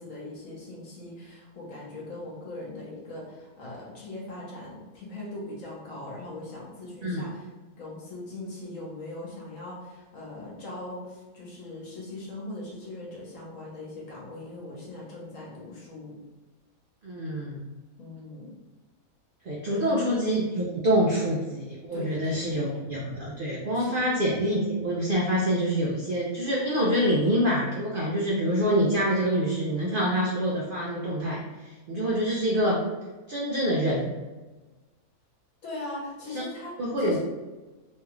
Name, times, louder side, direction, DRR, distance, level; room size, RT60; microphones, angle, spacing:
voice 1, 0.0-7.5 7.8-16.2 18.0-18.5 19.7-20.0 21.9-22.5 23.7-24.0 35.6-37.2, left 2 dB, 65° left, -5 dB, 1.4 m, -40 dB
voice 2, 17.0-17.7 19.4-32.8 33.3-34.1 36.8-37.2, equal, 65° right, -4 dB, 0.5 m, -26 dB
3.2 x 2.4 x 3.0 m, 1.2 s
omnidirectional pair, 1.6 m